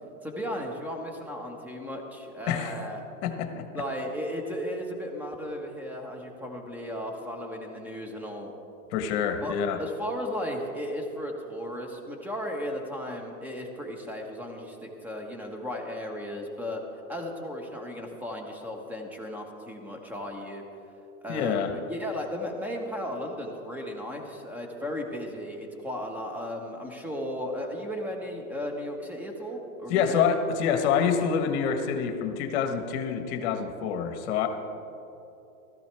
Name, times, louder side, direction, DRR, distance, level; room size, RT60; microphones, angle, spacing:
voice 1, 0.2-3.0 3.7-8.5 9.4-16.8 17.1-20.6 21.2-30.3, equal, 5° right, 2 dB, 1.3 m, -35 dB
voice 2, 3.2-3.7 8.9-9.8 21.3-21.7 29.9-34.5, left 7 dB, 50° left, 6 dB, 1.3 m, -26 dB
15.0 x 13.5 x 3.4 m, 3.0 s
hypercardioid pair, 130°, 43 cm